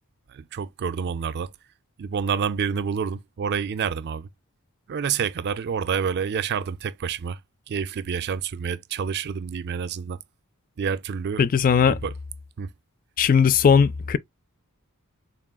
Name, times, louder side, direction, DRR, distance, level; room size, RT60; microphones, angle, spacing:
voice 1, 0.3-1.5 2.0-4.3 4.9-7.4 7.7-10.2 10.8-11.5 11.9-12.1 12.6-12.7, right 6 dB, 50° right, 0.4 m, -28 dB
voice 2, 11.4-12.0 13.2-14.2, left 6 dB, 40° left, 0.4 m, -18 dB
4.0 x 3.6 x 2.2 m
head